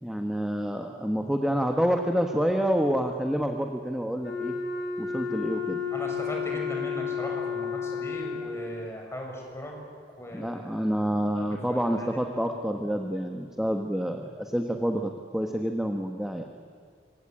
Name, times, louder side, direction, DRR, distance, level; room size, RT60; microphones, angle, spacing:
voice 1, 0.0-4.6 5.0-5.8 10.3-16.4, equal, 5° right, 4 dB, 1.4 m, -28 dB
Wind instrument woodwind instrument, 4.2-8.9, left 6 dB, 75° left, 7.2 m, -32 dB
voice 2, 5.9-9.8 10.2-10.9 11.3-12.3, equal, 15° left, 0 dB, 6.7 m, -38 dB
26.0 x 25.5 x 9.1 m, 2.2 s
head